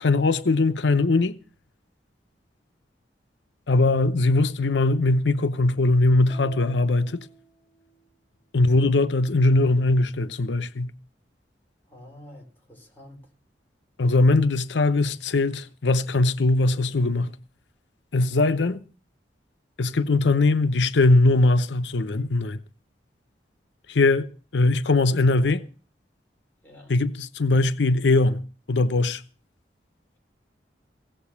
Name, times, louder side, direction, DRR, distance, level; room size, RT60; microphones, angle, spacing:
voice 1, 0.0-1.4 3.7-7.3 8.5-10.9 14.0-17.3 18.1-18.8 19.8-22.6 23.9-24.3 24.5-25.6 26.9-28.4 28.7-29.2, left 2 dB, 90° left, 0.7 m, -21 dB
sound 1, 6.3-8.1, left 2 dB, 30° left, 1.6 m, -48 dB
voice 2, 11.9-13.3 26.6-26.9, left 1 dB, 10° left, 3.9 m, -47 dB
17.0 x 7.4 x 7.2 m
head